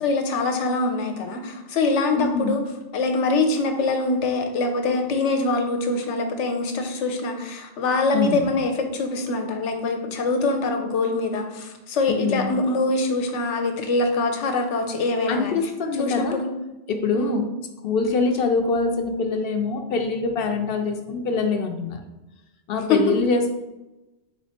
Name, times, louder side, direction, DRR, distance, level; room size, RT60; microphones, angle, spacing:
voice 1, 0.0-2.6 2.9-15.6 16.0-16.6 17.1-17.4 22.9-23.0, left 3 dB, 85° left, 4 dB, 1.0 m, -24 dB
voice 2, 2.1-2.5 8.1-8.5 12.1-12.6 15.3-16.4 16.9-17.5 17.8-22.0 22.7-23.5, left 4 dB, 60° left, 5 dB, 0.7 m, -24 dB
3.9 x 3.1 x 4.2 m, 1.0 s
omnidirectional pair, 1.2 m